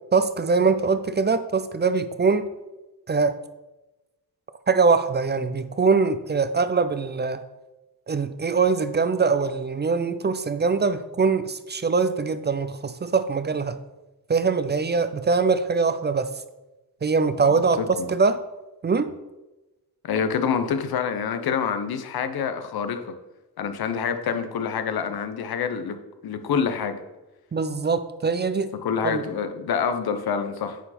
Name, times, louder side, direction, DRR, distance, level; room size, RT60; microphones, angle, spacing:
voice 1, 0.1-2.5 3.1-3.4 4.7-7.4 8.1-13.8 14.3-16.3 17.0-17.8 18.1-18.4 18.8-19.2 27.5-28.7 29.0-29.2, right 4 dB, 30° right, 12 dB, 0.4 m, -22 dB
voice 2, 17.5-18.1 20.0-23.2 23.6-26.0 26.2-27.0 28.8-30.8, left 6 dB, 90° left, 9 dB, 0.8 m, -27 dB
9.1 x 4.5 x 4.2 m, 1.0 s
cardioid pair, 80°, 36 cm